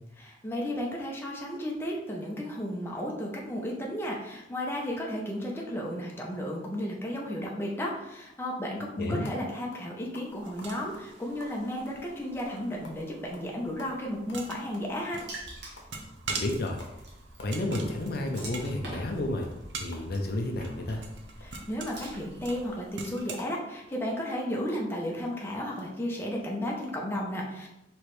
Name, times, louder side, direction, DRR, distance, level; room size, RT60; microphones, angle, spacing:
voice 1, 0.2-15.2 21.4-27.7, equal, 15° left, -2 dB, 0.6 m, -33 dB
sound 1, 9.2-9.4 9.7-9.9 10.1-13.0 13.3-13.5 13.8-15.4 15.8-15.9 16.3-16.4 16.8-17.0 17.2-18.0 18.3-20.6 20.9-24.8 25.3-25.4 25.7-25.8, left 2 dB, 80° left, 0.9 m, -50 dB
sound 2, 10.3-23.4, right 4 dB, 80° right, 0.6 m, -44 dB
Water / Splash splatter, 15.3-22.7, right 1 dB, 60° right, 1.2 m, -46 dB
voice 2, 16.3-16.8 17.4-19.5 19.8-21.0, left 1 dB, 55° left, 2 dB, 0.6 m, -31 dB
4.7 x 3.1 x 3.1 m, 0.89 s
head